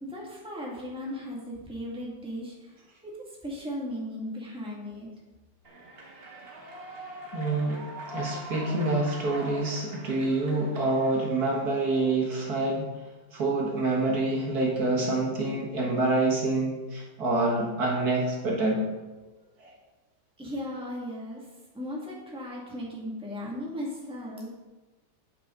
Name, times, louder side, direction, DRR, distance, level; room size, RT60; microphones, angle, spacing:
voice 1, 0.0-2.7 3.0-3.1 3.4-5.1 20.4-21.4 21.7-24.5, left 1 dB, 5° right, -5 dB, 2.1 m, -36 dB
Human voice / Clapping / Cheering, 5.6-11.6, equal, 35° right, 1.5 m, -42 dB
voice 2, 7.3-12.9 13.3-18.8 19.6-19.7, right 2 dB, 60° right, -2 dB, 2.0 m, -27 dB
9.2 x 8.6 x 3.9 m, 1.2 s
omnidirectional pair, 1.9 m